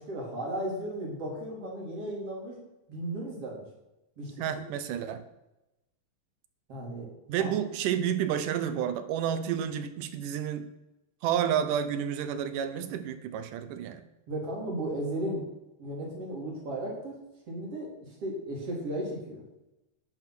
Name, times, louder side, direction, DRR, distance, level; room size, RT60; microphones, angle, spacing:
voice 1, 0.0-2.6 2.9-3.7 4.2-4.5 6.7-7.1 7.4-7.5 14.3-15.5 15.8-17.2 17.5-19.4, right 1 dB, 45° right, -3 dB, 4.9 m, -35 dB
voice 2, 4.4-5.2 7.3-10.7 11.2-14.0, right 9 dB, 85° right, 10 dB, 2.6 m, -30 dB
11.5 x 9.9 x 6.2 m, 0.95 s
omnidirectional pair, 3.6 m